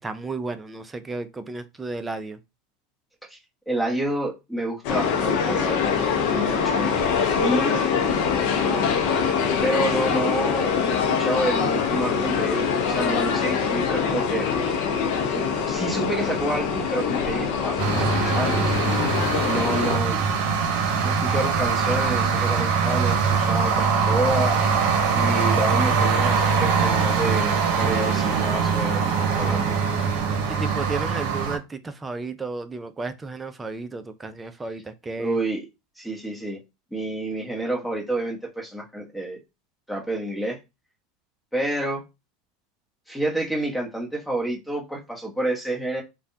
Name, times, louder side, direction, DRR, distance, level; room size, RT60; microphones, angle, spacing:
voice 1, 0.0-2.4 30.5-35.4, right 3 dB, 15° right, 0.4 m, -33 dB
voice 2, 3.7-7.8 9.6-14.5 15.3-18.6 19.4-20.2 21.0-24.6 25.1-29.8 35.2-35.7 36.0-36.6 36.9-39.4 39.9-40.6 41.5-42.0 43.1-46.0, right 1 dB, 5° left, 1.1 m, -29 dB
sound 1, 4.8-20.0, left 6 dB, 60° left, 0.6 m, -24 dB
sound 2, 17.8-31.6, right 5 dB, 60° right, 0.8 m, -22 dB
3.4 x 2.2 x 2.7 m
supercardioid pair, 115°, 0 cm